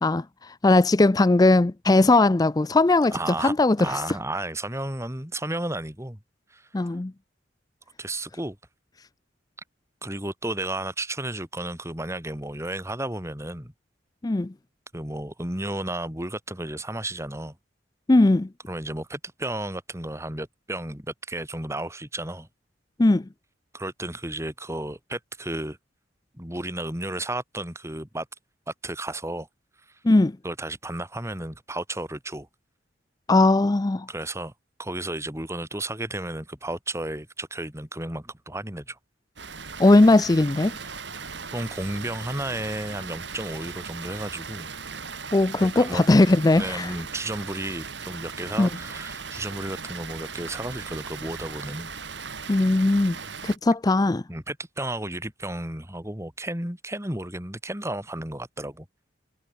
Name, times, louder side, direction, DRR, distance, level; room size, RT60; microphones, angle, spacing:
voice 1, 0.0-4.2 6.7-7.1 14.2-14.5 18.1-18.5 23.0-23.3 30.0-30.4 33.3-34.1 39.8-40.7 45.3-46.9 48.6-48.7 52.5-53.2 53.4-54.2, left 2 dB, 20° left, 0.4 m, -19 dB
voice 2, 3.1-6.2 6.5-6.7 8.0-8.6 10.0-13.7 14.9-17.6 18.7-22.5 23.7-25.8 26.3-28.3 28.7-29.5 30.4-32.5 34.1-34.5 34.8-39.0 41.5-44.7 45.6-46.0 46.6-51.9 54.3-58.8, right 1 dB, 15° right, 6.5 m, -33 dB
Water, 39.4-53.6, right 5 dB, 70° right, 4.1 m, -38 dB
head